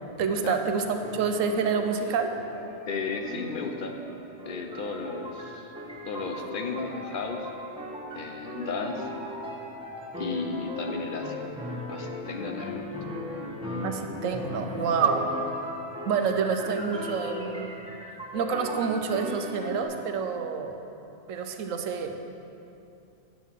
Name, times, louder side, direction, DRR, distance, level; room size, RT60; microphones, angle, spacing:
voice 1, 0.2-2.3 13.8-15.3 16.1-17.7 18.3-20.7 21.3-22.1, right 6 dB, 85° right, 6 dB, 1.1 m, -28 dB
sound 1, 0.6-19.8, left 1 dB, 5° right, 1.4 m, -38 dB
voice 2, 2.9-3.9 4.4-5.7 6.1-7.5 8.1-9.1 10.2-11.4 11.9-12.8, left 4 dB, 50° left, 4 dB, 0.8 m, -34 dB
8.4 x 5.6 x 7.3 m, 2.7 s
omnidirectional pair, 1.3 m